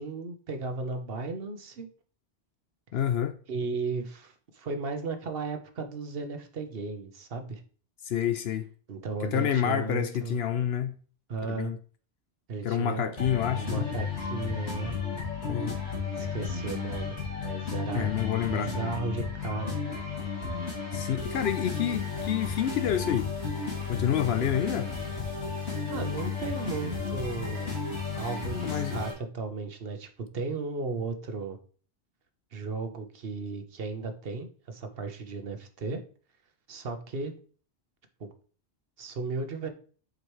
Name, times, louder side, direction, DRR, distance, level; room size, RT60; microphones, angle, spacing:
voice 1, 0.0-1.9 3.5-7.6 8.9-10.4 11.3-11.7 12.5-13.1 13.6-14.9 16.2-17.2 17.4-18.1 18.4-19.8 25.9-27.7 28.1-30.1 30.3-31.6 32.5-36.0 36.7-37.3 38.2-38.3 39.0-39.7, right 4 dB, 60° right, 1.2 m, -35 dB
voice 2, 2.9-3.3 8.0-8.7 9.2-10.9 11.4-11.8 12.6-13.9 15.5-15.7 17.9-18.9 20.9-23.3 23.9-24.9 28.6-29.0, left 9 dB, 70° left, 0.8 m, -28 dB
sound 1, 13.2-29.1, left 5 dB, 90° left, 3.1 m, -33 dB
7.7 x 5.0 x 3.2 m
omnidirectional pair, 1.2 m